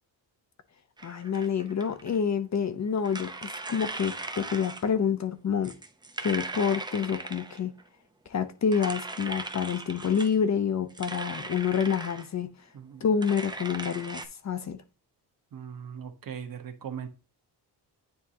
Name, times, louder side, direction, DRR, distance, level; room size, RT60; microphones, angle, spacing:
voice 1, 1.0-5.7 6.2-7.7 8.3-12.5 13.0-14.8, left 7 dB, 40° left, 0.6 m, -28 dB
sound 1, 1.0-2.2 3.0-4.8 5.6-7.8 8.7-10.3 10.9-12.3 13.2-14.3, right 2 dB, 10° right, 0.5 m, -38 dB
voice 2, 12.7-13.0 15.5-17.1, right 7 dB, 55° right, 1.1 m, -39 dB
9.5 x 3.7 x 2.8 m
wide cardioid pair, 140°, 41 cm